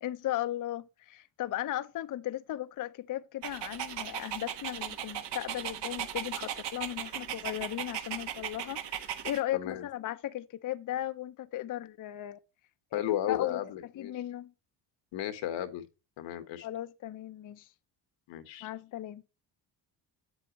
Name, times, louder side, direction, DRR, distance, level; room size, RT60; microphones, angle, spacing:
voice 1, 0.0-12.4 13.3-13.6 14.0-14.5 16.6-17.7 18.6-19.2, left 13 dB, 45° left, 0.6 m, -36 dB
Dog, 3.4-9.4, right 10 dB, 75° right, 1.4 m, -37 dB
voice 2, 9.5-9.8 12.9-14.1 15.1-15.8 16.2-16.7 18.3-18.7, left 11 dB, 90° left, 1.5 m, -34 dB
8.1 x 7.8 x 3.0 m
cardioid pair, 115°, 43 cm